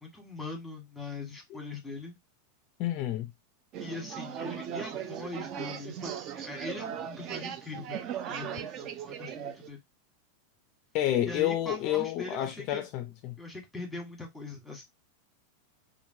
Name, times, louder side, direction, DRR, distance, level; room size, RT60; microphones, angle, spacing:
voice 1, 0.0-2.2 3.8-9.8 11.2-12.9 13.4-14.8, left 3 dB, ahead, 1.2 m, -41 dB
voice 2, 2.8-3.3 10.9-13.3, left 12 dB, 40° left, 0.4 m, -29 dB
sound 1, 3.7-9.7, right 9 dB, 35° right, 0.4 m, -38 dB
3.0 x 2.5 x 2.7 m
supercardioid pair, 150°, 0 cm